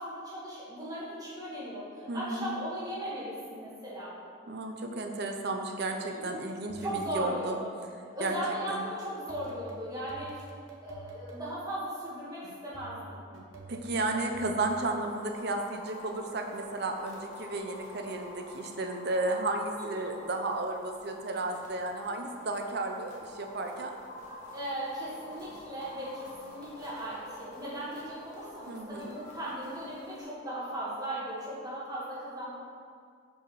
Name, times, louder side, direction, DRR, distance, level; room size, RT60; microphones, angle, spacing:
voice 1, 0.0-4.1 6.1-6.4 6.8-7.7 8.1-10.4 10.8-13.0 19.7-20.1 24.5-32.5, right 1 dB, 20° right, -9 dB, 1.5 m, -37 dB
voice 2, 2.1-2.5 4.5-7.6 8.2-8.4 8.7-8.8 13.7-24.0 28.7-29.1, right 2 dB, 50° right, 3 dB, 0.6 m, -33 dB
sound 1, 6.0-7.2 9.3-11.4 12.4-14.7, right 3 dB, 75° right, 0.9 m, -48 dB
sound 2, 14.6-30.2, left 1 dB, 35° left, 1.2 m, -48 dB
5.0 x 4.8 x 5.9 m, 2.1 s
head